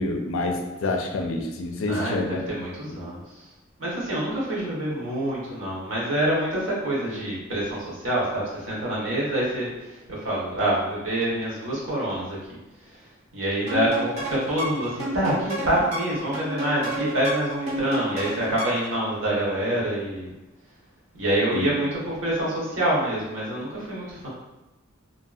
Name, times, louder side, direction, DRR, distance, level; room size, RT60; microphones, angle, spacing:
voice 1, 0.0-2.4 2.9-3.0 21.5-21.7, left 2 dB, 70° left, 3 dB, 0.4 m, -27 dB
voice 2, 1.9-3.4 3.8-12.4 12.9-13.0 13.3-20.3 21.1-24.3, right 1 dB, 70° right, -6 dB, 1.1 m, -26 dB
sound 1, 13.7-19.0, right 1 dB, 35° right, 0.7 m, -31 dB
2.8 x 2.7 x 2.3 m, 1.0 s
head